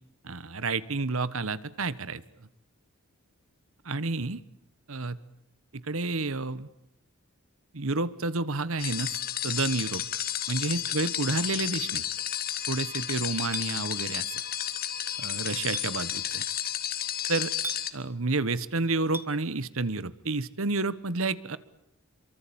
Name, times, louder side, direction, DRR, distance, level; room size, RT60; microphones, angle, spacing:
voice 1, 0.2-2.2 3.8-4.4 4.9-5.2 5.7-6.7 7.7-9.2 9.4-10.0 10.5-12.0 12.7-14.3 15.2-16.4 17.3-17.5 17.9-21.6, right 3 dB, 70° right, 16 dB, 1.3 m, -30 dB
sound 1, 8.8-17.9, left 11 dB, 45° left, 1.7 m, -32 dB
Chink clink, 13.5-13.7 15.7-15.9 17.6-17.8 19.1-19.3, right 3 dB, 10° right, 1.4 m, -35 dB
27.5 x 24.0 x 8.9 m, 0.75 s
head